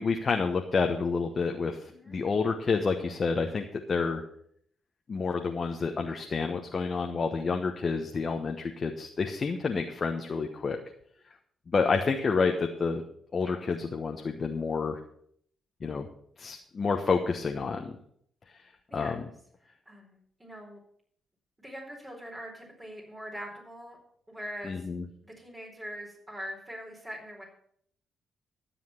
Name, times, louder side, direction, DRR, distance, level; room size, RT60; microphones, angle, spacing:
voice 1, 0.0-4.2 5.1-10.8 11.7-13.0 13.3-15.0 15.8-16.1 16.4-18.0 18.9-19.2 24.6-25.0, left 4 dB, 45° left, 4 dB, 1.1 m, -29 dB
voice 2, 19.6-20.8 21.6-24.0 24.3-24.9 25.2-27.4, equal, 20° right, -2 dB, 4.3 m, -43 dB
12.5 x 7.3 x 5.8 m, 0.66 s
hypercardioid pair, 45°, 0 cm